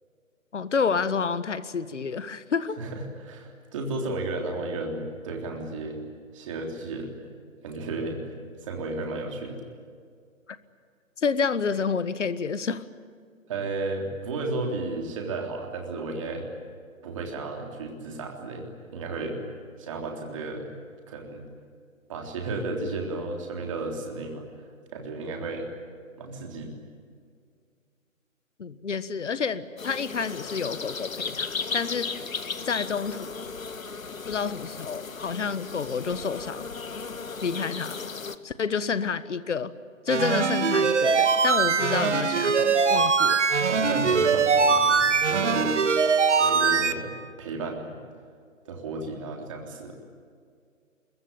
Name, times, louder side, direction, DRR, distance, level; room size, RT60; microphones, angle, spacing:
voice 1, 0.5-2.8 11.2-12.8 28.6-32.1 32.6-33.4 34.3-36.7 37.4-38.0 38.4-39.7 40.0-43.5, left 5 dB, 60° left, 14 dB, 1.5 m, -29 dB
voice 2, 2.8-6.0 6.3-7.2 7.6-8.2 8.6-9.6 13.5-16.5 17.0-19.4 19.8-20.7 21.1-21.4 22.1-24.5 24.9-25.7 26.2-26.7 43.7-45.8 46.4-47.1 47.4-48.0 48.7-49.9, right 3 dB, 25° right, 1 dB, 3.5 m, -33 dB
sound 1, 29.8-38.4, left 5 dB, 75° left, 1.8 m, -35 dB
sound 2, 40.1-46.9, right 5 dB, 60° right, 1.7 m, -22 dB
25.5 x 22.0 x 9.0 m, 2.2 s
hypercardioid pair, 165°, 40 cm